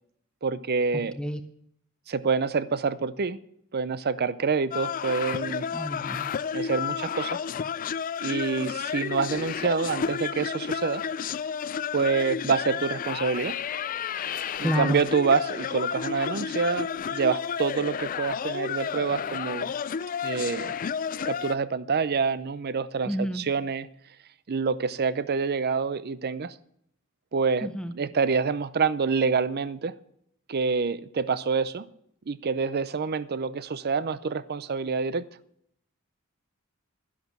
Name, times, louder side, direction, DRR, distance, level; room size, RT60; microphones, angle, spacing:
voice 1, 0.4-1.2 2.1-3.4 3.7-5.7 6.5-7.4 8.2-11.0 11.9-13.6 14.6-19.7 20.2-20.8 21.2-23.9 24.5-26.5 27.3-30.0 30.5-31.9 32.3-35.3, right 5 dB, 50° right, 0.6 m, -27 dB
sound 1, 4.7-21.5, left 7 dB, 40° left, 0.4 m, -31 dB
voice 2, 5.7-6.2 14.6-15.0 23.0-23.4 27.6-27.9, equal, 5° left, 0.7 m, -29 dB
11.5 x 11.0 x 6.0 m
head